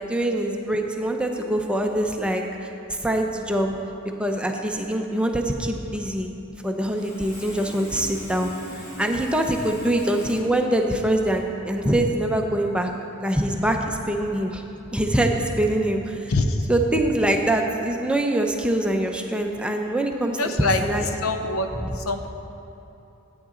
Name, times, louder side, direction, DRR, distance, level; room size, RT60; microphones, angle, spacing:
voice 1, 0.0-2.7 3.0-3.7 4.2-6.3 6.6-8.5 8.8-12.9 13.2-14.6 14.9-16.3 16.7-21.1, right 1 dB, 5° right, 2 dB, 0.6 m, -24 dB
Sawing, 6.8-10.4, equal, 50° left, 2.6 m, -40 dB
voice 2, 16.3-16.7 20.4-20.8 21.2-22.3, left 2 dB, 70° left, 6 dB, 0.7 m, -24 dB
13.0 x 8.8 x 3.8 m, 3.0 s
head